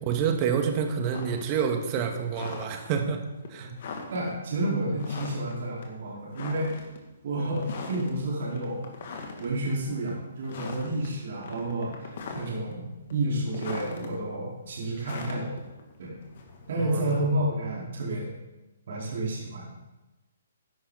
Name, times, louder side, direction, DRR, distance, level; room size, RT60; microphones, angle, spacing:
voice 1, 0.0-3.2 3.5-3.7 16.8-17.2, right 7 dB, 35° right, 4 dB, 2.0 m, -28 dB
sound 1, 1.1-1.5 1.8-3.0 3.4-3.5 3.8-4.3 5.0-5.6 5.8-5.9 6.3-7.0 7.5-8.1 8.5-9.5 9.9-10.1 10.4-11.1 11.4-12.7 13.1-14.1 15.0-16.7, left 4 dB, 55° left, 2.5 m, -39 dB
voice 2, 4.1-6.7 7.2-8.9 9.4-15.5 16.0-16.1 16.7-18.3 18.9-19.7, right 1 dB, 60° right, -5 dB, 4.6 m, -30 dB
14.5 x 11.0 x 4.2 m, 1.1 s
figure-of-eight pair, 135°, 0 cm